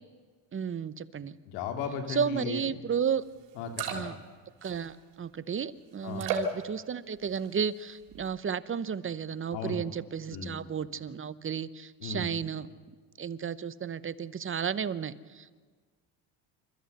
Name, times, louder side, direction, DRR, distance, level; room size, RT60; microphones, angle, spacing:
voice 1, 0.5-1.4 2.1-3.2 3.9-4.1 4.6-12.7 13.2-15.5, right 7 dB, 25° right, 16 dB, 0.8 m, -33 dB
voice 2, 1.5-2.6 3.5-4.1 6.0-6.3 9.5-9.8 10.3-10.5 12.0-12.3, left 6 dB, 85° left, 5 dB, 3.1 m, -36 dB
pocket flask, 3.1-3.2 3.5-4.3 4.6-5.1 6.1-6.6 7.2-7.6 8.0-8.3, right 5 dB, 85° right, 3.4 m, -34 dB
27.0 x 13.5 x 8.0 m, 1.5 s
supercardioid pair, 95°, 49 cm